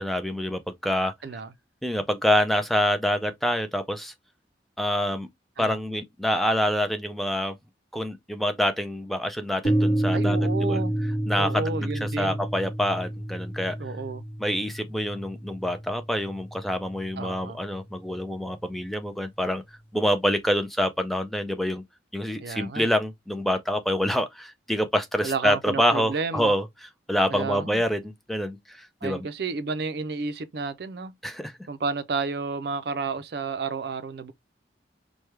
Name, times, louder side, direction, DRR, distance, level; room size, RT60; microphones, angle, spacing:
voice 1, 0.0-1.1 1.8-4.1 4.8-5.3 5.6-7.5 7.9-10.8 11.3-13.8 14.4-19.6 19.9-21.8 22.1-28.0 28.3-29.3 31.2-31.5, equal, ahead, 0.4 m, -26 dB
voice 2, 1.2-1.5 5.6-5.8 10.1-11.0 11.4-12.4 13.8-14.2 17.2-17.6 22.4-22.9 25.2-26.5 27.3-27.8 29.0-31.1 31.7-34.3, right 4 dB, 65° right, 0.5 m, -31 dB
sound 1, 9.6-17.5, right 1 dB, 30° left, 1.4 m, -29 dB
4.6 x 2.2 x 3.3 m
head